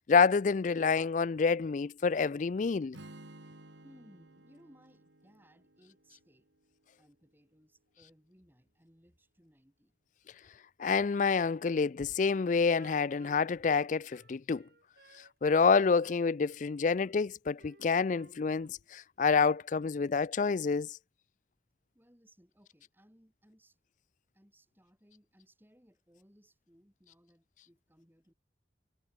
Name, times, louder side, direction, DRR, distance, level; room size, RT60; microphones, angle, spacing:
voice 1, 0.0-3.0 10.8-14.6 15.4-20.9, left 5 dB, 40° left, 0.4 m, -28 dB
Strum, 2.9-7.1, right 1 dB, 75° right, 2.7 m, -55 dB
voice 2, 3.8-6.5 7.0-9.9 21.9-23.8 24.3-28.3, equal, 10° right, 6.4 m, -63 dB
Wind instrument woodwind instrument, 12.3-15.7 16.0-17.2 17.6-18.9 19.2-19.7, right 2 dB, 55° right, 2.9 m, -59 dB
head